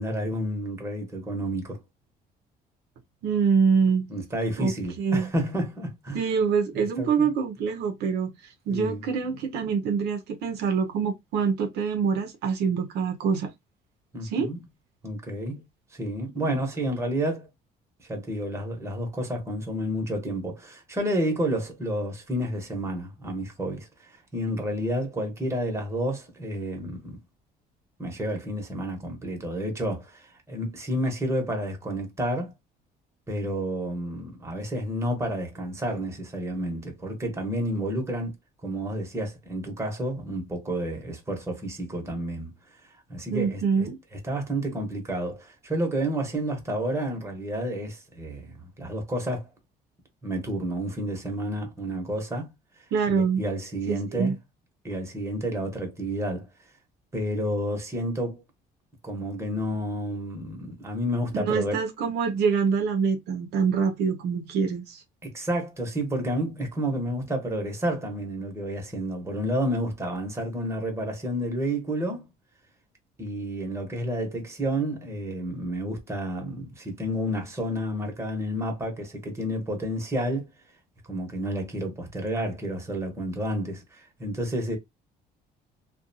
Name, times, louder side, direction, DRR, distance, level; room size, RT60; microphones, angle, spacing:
voice 1, 0.0-1.8 4.1-6.2 7.0-7.3 8.7-9.1 14.1-14.6 15.0-15.6 15.9-17.5 18.0-27.2 28.0-32.5 33.3-38.3 38.6-42.5 43.1-49.5 50.2-52.5 53.1-54.4 54.8-56.5 57.1-58.4 59.0-61.8 65.2-72.3 73.2-80.5 81.1-84.8, right 1 dB, 15° right, 1.0 m, -30 dB
voice 2, 3.2-4.1 4.6-5.3 6.1-13.5 14.3-14.5 16.4-16.5 43.3-44.0 52.9-53.4 53.9-54.3 61.3-65.0, right 6 dB, 75° right, 0.6 m, -25 dB
2.5 x 2.2 x 2.6 m
cardioid pair, 110°, 17 cm